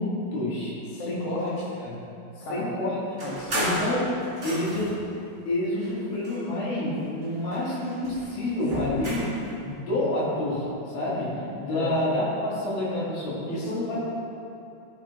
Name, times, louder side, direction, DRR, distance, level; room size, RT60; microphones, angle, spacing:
voice 1, 0.0-0.8 1.1-1.5 1.8-2.0 2.4-3.0 3.6-4.1 4.4-5.0 5.5-9.3 9.6-10.7 10.9-14.0, left 1 dB, 80° left, -7 dB, 4.0 m, -28 dB
voice 2, 0.9-1.4 2.4-2.7 3.2-3.8 11.7-12.0 13.5-14.0, left 1 dB, 55° left, -5 dB, 0.8 m, -33 dB
sound 1, 3.2-5.0 5.7-6.9 7.2-9.4, equal, 30° right, 1.1 m, -34 dB
13.5 x 6.5 x 3.2 m, 2.7 s
omnidirectional pair, 4.2 m